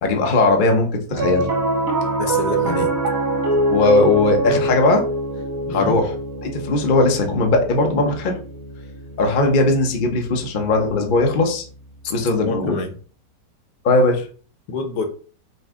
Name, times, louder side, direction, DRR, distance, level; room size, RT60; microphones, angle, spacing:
voice 1, 0.0-1.5 3.7-5.0 5.7-6.1 6.4-8.4 9.2-11.6 12.1-12.8 13.8-14.2, left 2 dB, 50° left, 0.6 m, -18 dB
Piano, 1.1-11.6, right 2 dB, 55° right, 1.3 m, -25 dB
voice 2, 2.2-2.9 5.7-6.0 12.4-13.0 14.7-15.0, left 4 dB, 75° left, 1.4 m, -26 dB
5.4 x 2.1 x 3.5 m
omnidirectional pair, 1.9 m